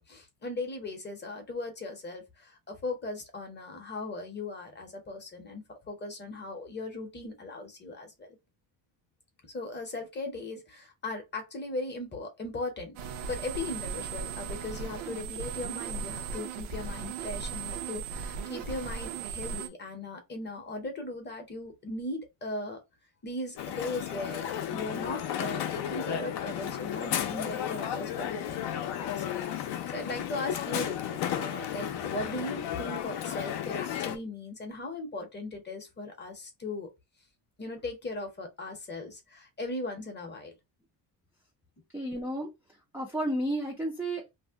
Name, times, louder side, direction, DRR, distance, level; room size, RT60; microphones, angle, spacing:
voice 1, 0.0-8.4 9.5-13.0 13.3-22.8 23.2-29.4 29.7-36.9 37.6-40.5, left 2 dB, 20° left, 0.7 m, -38 dB
sound 1, 13.0-19.7, right 6 dB, 80° right, 0.8 m, -37 dB
Crowd, 23.6-34.2, left 10 dB, 55° left, 0.6 m, -33 dB
voice 2, 41.9-42.5 42.9-44.3, right 1 dB, 5° right, 0.4 m, -32 dB
2.7 x 2.1 x 3.4 m
cardioid pair, 155°, 49 cm